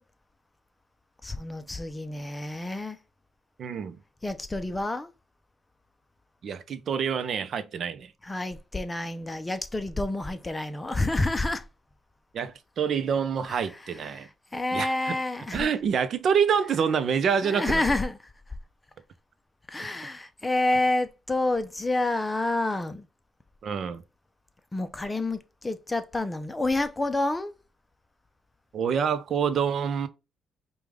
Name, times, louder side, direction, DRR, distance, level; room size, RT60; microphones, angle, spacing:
voice 1, 1.2-3.0 4.2-5.1 8.2-11.6 13.5-13.6 14.1-14.3 14.5-15.7 17.4-18.1 19.7-23.0 24.7-27.5, left 2 dB, 15° left, 0.6 m, -28 dB
voice 2, 3.6-4.0 6.4-8.1 12.3-14.3 14.7-15.2 15.5-17.9 23.6-24.0 28.7-30.1, right 7 dB, 60° right, 0.6 m, -27 dB
5.0 x 2.3 x 3.5 m
cardioid pair, 90°, 0 cm